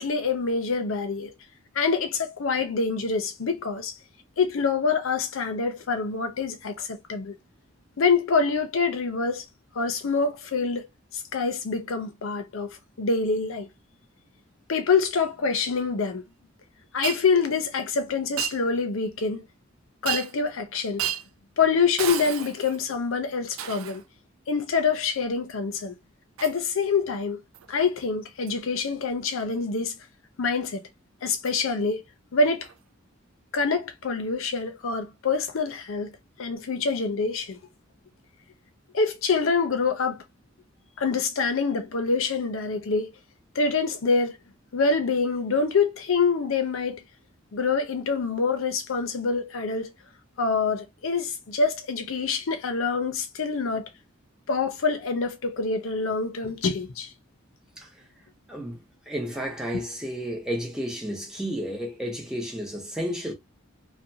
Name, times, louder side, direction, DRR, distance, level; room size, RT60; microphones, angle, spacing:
voice 1, 0.0-1.3 1.7-4.0 4.4-7.3 8.0-9.4 9.7-10.9 11.1-12.7 13.0-13.7 14.7-16.2 16.9-19.5 20.0-21.1 21.6-24.0 24.5-25.9 26.4-27.4 27.7-30.0 30.4-30.8 31.2-32.0 32.3-32.7 33.5-36.1 36.4-37.6 38.9-40.2 41.0-43.1 43.5-44.4 44.7-47.0 47.5-49.9 50.4-53.9 54.5-57.1, left 4 dB, 85° left, 0.6 m, -26 dB
Shatter, 17.0-17.2 18.4-18.6 20.1-20.5 21.0-21.3 22.0-22.8 23.6-24.0 26.4-26.6 27.5-27.7 28.5-28.6 31.5-31.6 32.6-32.7, right 12 dB, 90° right, 0.4 m, -32 dB
voice 2, 58.5-63.3, equal, 5° right, 0.8 m, -32 dB
2.5 x 2.2 x 2.7 m
head